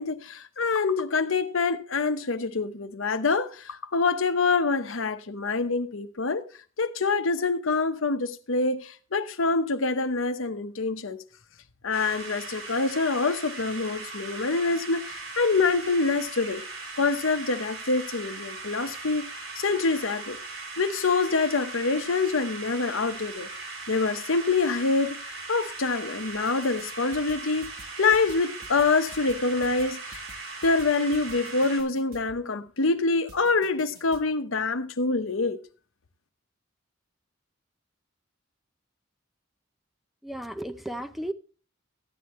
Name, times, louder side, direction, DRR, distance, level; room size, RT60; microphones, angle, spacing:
voice 1, 0.0-6.4 6.8-11.2 11.8-16.6 17.0-20.4 20.8-23.5 23.9-27.7 28.0-30.2 30.6-35.6, left 4 dB, 75° left, 0.9 m, -26 dB
sound 1, 11.9-31.8, right 3 dB, 90° right, 3.6 m, -39 dB
sound 2, 26.3-26.9 27.1-32.4 33.3-34.2, right 2 dB, 45° right, 1.4 m, -50 dB
voice 2, 40.2-41.3, right 1 dB, ahead, 0.5 m, -34 dB
14.0 x 9.5 x 3.1 m
head